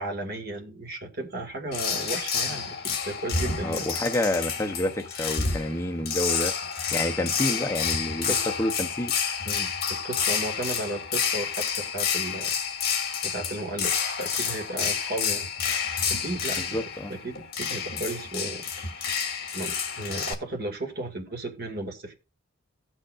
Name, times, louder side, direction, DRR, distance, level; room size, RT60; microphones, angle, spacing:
voice 1, 0.0-3.9 8.2-8.6 9.4-12.5 13.2-15.5 16.1-18.6 18.9-22.1, right 2 dB, 50° right, 1.9 m, -35 dB
sound 1, 1.7-20.3, left 6 dB, 50° left, 2.0 m, -29 dB
voice 2, 3.6-6.5 6.9-8.3 8.6-9.1 16.6-17.1, left 1 dB, 15° left, 0.7 m, -28 dB
17.0 x 6.3 x 2.4 m
head